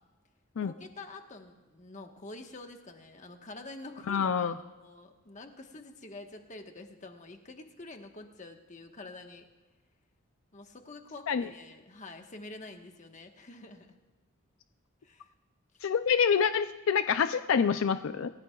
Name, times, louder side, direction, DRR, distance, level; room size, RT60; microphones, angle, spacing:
voice 1, 0.6-9.4 10.5-14.0 15.0-15.3 15.7-15.8, left 2 dB, 35° left, 4 dB, 1.3 m, -47 dB
voice 2, 4.1-4.5 11.3-11.5 15.8-18.3, left 6 dB, 80° left, 11 dB, 0.4 m, -26 dB
27.0 x 15.5 x 2.4 m, 1.2 s
head